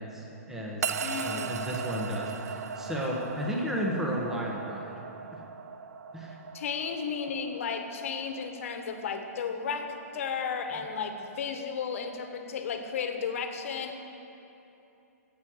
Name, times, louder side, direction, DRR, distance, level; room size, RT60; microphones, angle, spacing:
voice 1, 0.0-4.9 5.3-5.4 6.1-6.4, equal, 5° right, -3 dB, 1.5 m, -33 dB
sound 1, 0.8-11.2, right 6 dB, 75° right, 0.6 m, -39 dB
voice 2, 1.0-1.5 6.5-14.0, left 6 dB, 60° left, 6 dB, 1.5 m, -34 dB
13.5 x 8.2 x 7.9 m, 2.9 s
hypercardioid pair, 155°, 8 cm